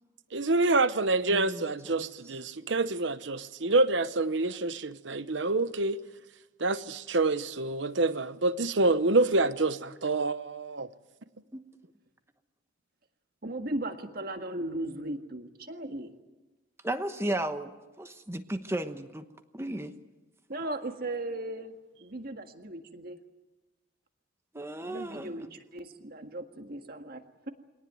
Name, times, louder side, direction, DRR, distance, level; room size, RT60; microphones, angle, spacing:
voice 1, 0.3-6.0 6.6-10.9, right 2 dB, 65° right, 1.0 m, -27 dB
voice 2, 1.3-2.1 11.5-11.6 16.8-19.3 19.5-19.9 24.5-25.4, right 1 dB, 15° right, 1.1 m, -35 dB
voice 3, 13.4-16.1 20.5-21.7 22.0-23.2 24.8-27.5, right 1 dB, 50° right, 1.7 m, -37 dB
24.0 x 18.5 x 9.3 m
head